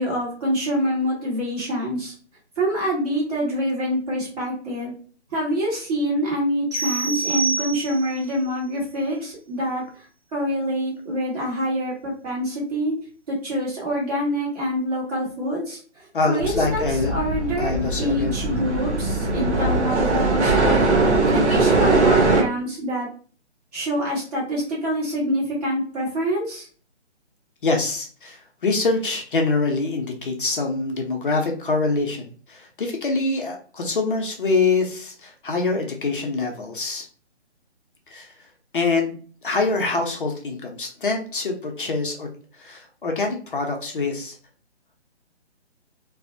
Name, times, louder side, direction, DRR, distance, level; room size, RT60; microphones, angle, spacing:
voice 1, 0.0-2.1 2.6-4.9 5.3-10.0 10.3-12.9 13.3-23.1 23.7-26.7, equal, 35° right, -5 dB, 1.2 m, -26 dB
sound 1, 6.7-8.2, right 4 dB, 15° right, 0.6 m, -27 dB
voice 2, 16.1-17.1 17.6-18.3 21.0-21.2 27.6-37.1 38.1-38.3 38.7-39.2 39.4-44.4, left 3 dB, 50° left, 2 dB, 0.5 m, -25 dB
sound 2, 16.4-22.4, right 3 dB, 90° right, 0.8 m, -21 dB
2.5 x 2.0 x 2.5 m, 0.42 s
hypercardioid pair, 155°, 34 cm